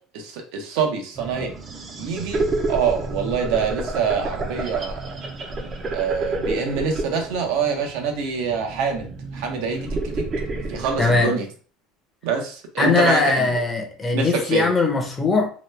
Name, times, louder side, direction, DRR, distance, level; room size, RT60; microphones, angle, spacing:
voice 1, 0.1-1.5 2.0-2.4 2.7-5.1 5.9-10.2 10.7-11.5 12.2-13.5 14.1-14.7, right 6 dB, 75° right, 3 dB, 0.8 m, -25 dB
sound 1, 1.2-11.2, right 2 dB, 25° right, 0.5 m, -30 dB
voice 2, 11.0-11.3 12.8-15.5, left 3 dB, 15° left, 3 dB, 0.7 m, -20 dB
2.9 x 2.2 x 3.1 m, 0.41 s
cardioid pair, 150°, 0 cm